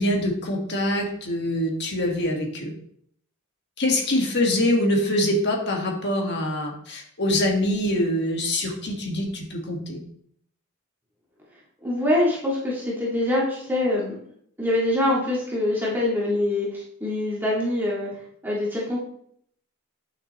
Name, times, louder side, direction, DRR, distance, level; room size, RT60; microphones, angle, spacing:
voice 1, 0.0-2.7 3.8-10.0, left 1 dB, 50° left, 1 dB, 1.7 m, -24 dB
voice 2, 11.8-14.2 14.6-18.2 18.4-19.0, left 1 dB, 10° right, -6 dB, 1.8 m, -24 dB
9.5 x 6.4 x 3.0 m, 0.67 s
head